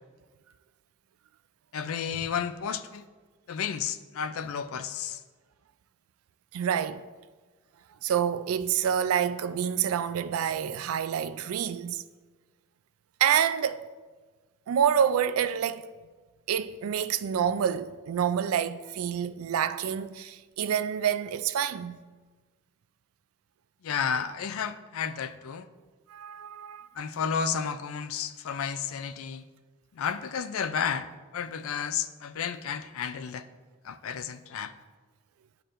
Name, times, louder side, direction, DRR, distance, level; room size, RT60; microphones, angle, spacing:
voice 1, 1.7-3.0 3.5-5.2 23.8-25.7 27.0-29.4 29.9-31.1 31.3-33.5 33.8-34.7, left 7 dB, 75° left, 0.4 m, -32 dB
voice 2, 6.5-7.0 8.0-12.0 13.2-13.9 14.7-15.9 16.5-22.0 24.1-24.2 26.1-26.9, right 8 dB, 80° right, 0.3 m, -27 dB
11.5 x 4.5 x 2.5 m
head